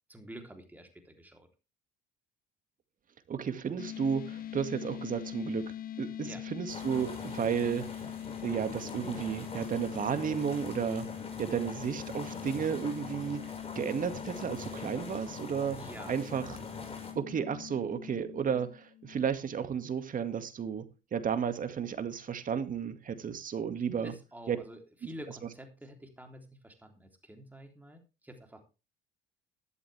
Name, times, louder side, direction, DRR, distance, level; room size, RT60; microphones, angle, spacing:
voice 1, 0.1-1.5 6.2-6.4 15.7-16.4 24.0-28.6, equal, 10° right, 3.4 m, -48 dB
voice 2, 3.3-5.7 6.0-8.0 8.4-11.1 11.4-13.4 13.8-15.8 16.1-16.6 17.2-20.8 21.1-24.1 24.5-24.6, right 7 dB, 45° right, 2.1 m, -33 dB
sound 1, 3.8-19.3, left 11 dB, 45° left, 0.7 m, -43 dB
sound 2, 6.7-17.1, left 3 dB, 30° left, 5.4 m, -44 dB
13.5 x 11.5 x 3.5 m
hypercardioid pair, 70°, 20 cm